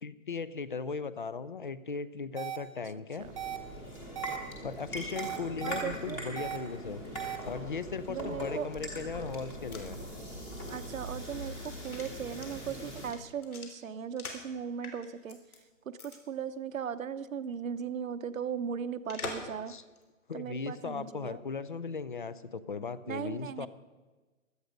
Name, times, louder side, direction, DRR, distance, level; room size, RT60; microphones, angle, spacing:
voice 1, 0.0-3.3 4.6-7.0 7.4-10.0 19.7-19.8 20.3-23.7, left 5 dB, 40° left, 16 dB, 0.5 m, -37 dB
sound 1, 2.4-2.6 3.4-3.6 4.1-4.4 5.2-5.8 6.4-6.6 7.1-7.4, right 11 dB, 25° right, 0.9 m, -36 dB
sound 2, 3.2-13.1, equal, 10° left, 1.1 m, -41 dB
voice 2, 5.6-6.2 8.1-8.7 10.7-15.4 15.9-19.7 20.3-21.4 23.1-23.7, right 7 dB, 70° right, 12 dB, 0.9 m, -37 dB
sound 3, 9.5-14.5 14.8-15.6 16.0-16.2 16.5-16.6 19.1-19.6 20.0-20.1, left 4 dB, 85° left, 3.4 m, -45 dB
16.5 x 12.0 x 5.1 m, 1.2 s
hypercardioid pair, 165°, 42 cm